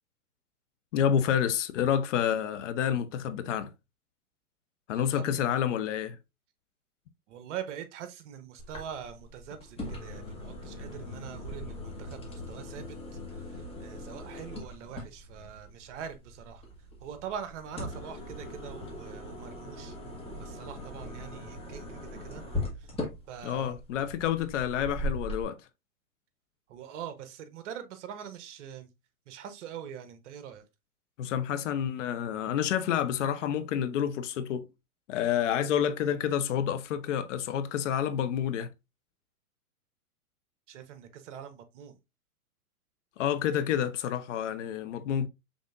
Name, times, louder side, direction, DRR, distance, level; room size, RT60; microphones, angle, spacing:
voice 1, 0.9-3.7 4.9-6.2 23.4-25.6 31.2-34.7 35.1-38.7 43.2-45.3, left 9 dB, 55° left, 0.7 m, -29 dB
voice 2, 4.9-5.5 7.3-13.0 13.3-16.6 17.0-20.0 20.4-22.4 22.7-22.9 23.3-23.8 24.2-24.3 26.7-28.9 29.3-30.7 40.7-42.0, right 8 dB, 55° right, 0.9 m, -43 dB
sound 1, 8.6-25.4, left 1 dB, 15° left, 1.3 m, -40 dB
5.2 x 3.6 x 2.4 m
hypercardioid pair, 125°, 44 cm